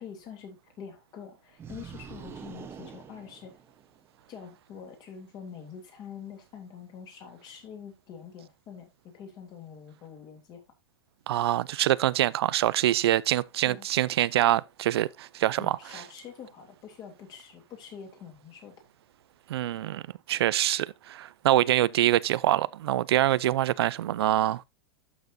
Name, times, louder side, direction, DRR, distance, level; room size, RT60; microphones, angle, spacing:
voice 1, 0.0-3.6 4.3-10.6 13.6-13.9 15.6-18.7, left 7 dB, 35° left, 3.1 m, -45 dB
sound 1, 1.6-4.1, right 7 dB, 20° right, 1.0 m, -45 dB
voice 2, 11.3-15.8 19.5-20.0 20.3-24.6, right 13 dB, 90° right, 0.4 m, -25 dB
12.0 x 6.0 x 2.7 m
supercardioid pair, 150°, 13 cm